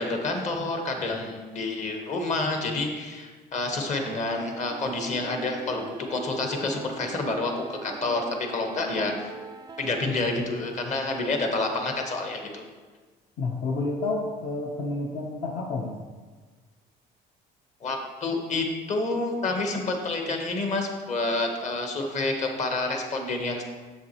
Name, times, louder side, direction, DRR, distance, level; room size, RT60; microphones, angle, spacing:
voice 1, 0.0-9.3 9.8-12.6 17.8-23.6, left 2 dB, 45° left, 3 dB, 1.3 m, -28 dB
sound 1, 3.7-10.4, right 4 dB, 25° right, 0.4 m, -41 dB
voice 2, 13.4-16.0, left 3 dB, 60° left, -3 dB, 0.9 m, -30 dB
7.4 x 7.1 x 3.0 m, 1.4 s
cardioid pair, 110°, 17 cm